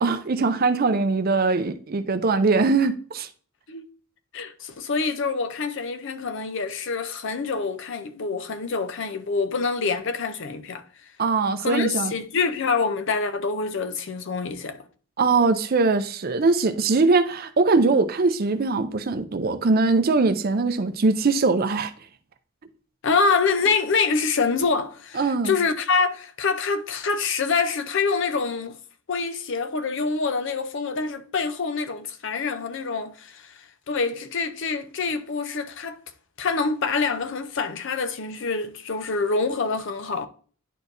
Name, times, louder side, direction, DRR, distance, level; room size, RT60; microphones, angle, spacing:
voice 1, 0.0-3.3 11.2-12.1 15.2-21.9 25.1-25.6, right 3 dB, 45° right, 0.5 m, -21 dB
voice 2, 4.3-10.8 11.6-14.8 23.0-28.8 29.1-33.5 33.9-36.0 36.4-40.3, left 4 dB, 60° left, 0.6 m, -26 dB
10.0 x 4.4 x 2.6 m
head